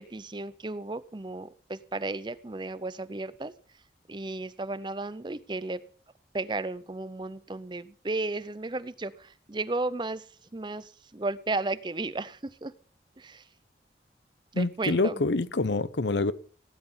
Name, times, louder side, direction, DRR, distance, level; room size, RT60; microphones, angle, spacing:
voice 1, 0.0-3.5 4.1-5.8 6.3-10.3 10.5-12.7 13.2-13.4 14.5-15.2, right 2 dB, 25° right, 0.6 m, -34 dB
voice 2, 14.5-16.3, left 3 dB, 75° left, 0.8 m, -26 dB
17.0 x 10.0 x 5.7 m
head